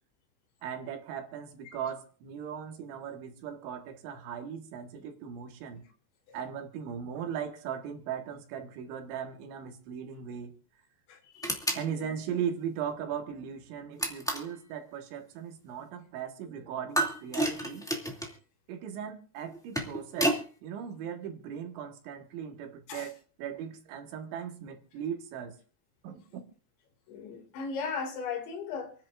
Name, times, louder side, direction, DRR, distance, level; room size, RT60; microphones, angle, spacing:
voice 1, 0.6-5.8 6.3-10.5 11.7-17.9 18.7-20.4 20.6-25.6 26.0-26.4, right 8 dB, 90° right, 3.9 m, -38 dB
voice 2, 11.1-11.6 12.0-12.1 22.9-23.1 27.1-28.9, left 5 dB, 80° left, 4.7 m, -37 dB
sound 1, 11.4-11.9 14.0-14.5 16.9-18.3 19.5-20.4, right 1 dB, 5° left, 0.5 m, -30 dB
29.0 x 10.0 x 2.5 m
omnidirectional pair, 5.2 m